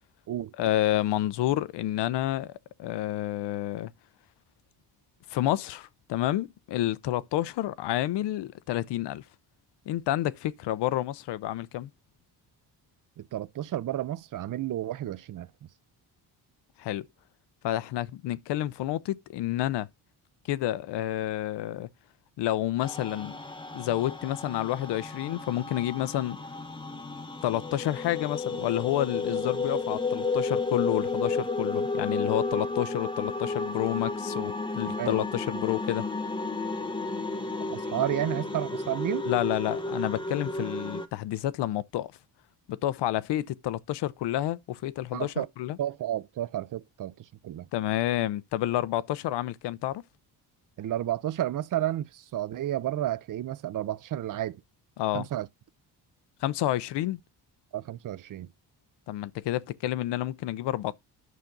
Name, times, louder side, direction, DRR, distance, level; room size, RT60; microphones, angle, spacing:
voice 1, 0.6-2.5 2.8-3.9 5.3-9.2 9.9-11.9 16.8-17.1 17.6-19.9 20.5-21.9 22.4-23.4 23.7-26.4 27.4-36.1 39.3-42.1 42.7-45.8 47.7-50.0 55.0-55.3 56.4-57.2 59.1-60.9, left 13 dB, 85° left, 0.6 m, -29 dB
voice 2, 13.2-15.5 35.0-35.1 37.7-39.3 45.1-45.5 45.8-47.1 47.4-47.7 50.8-54.6 55.1-55.5 57.7-58.5, right 12 dB, 50° right, 0.5 m, -31 dB
sound 1, 22.8-41.1, left 3 dB, 10° left, 0.9 m, -32 dB
9.3 x 5.9 x 3.8 m
cardioid pair, 115°, 41 cm